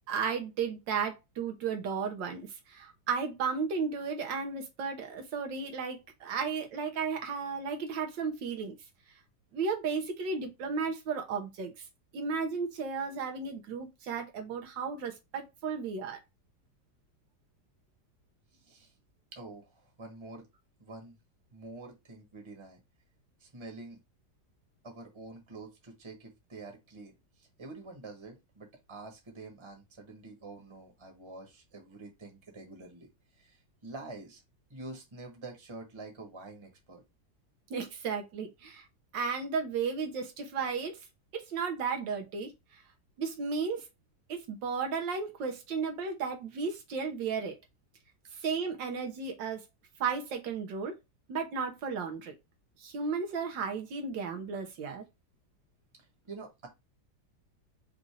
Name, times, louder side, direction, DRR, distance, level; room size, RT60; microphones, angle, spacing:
voice 1, 0.1-8.8 9.5-11.7 12.1-16.2 37.7-38.9 39.1-41.0 41.3-42.5 43.2-43.8 44.3-47.6 48.4-49.6 50.0-50.9 51.3-52.3 52.8-55.0, right 5 dB, 90° right, 1.7 m, -34 dB
voice 2, 18.5-18.9 19.3-20.5 20.8-21.2 21.5-22.8 23.4-24.0 24.8-33.1 33.4-34.4 34.7-37.0 56.0-56.7, right 3 dB, 20° right, 1.1 m, -47 dB
5.3 x 2.6 x 3.2 m
omnidirectional pair, 1.9 m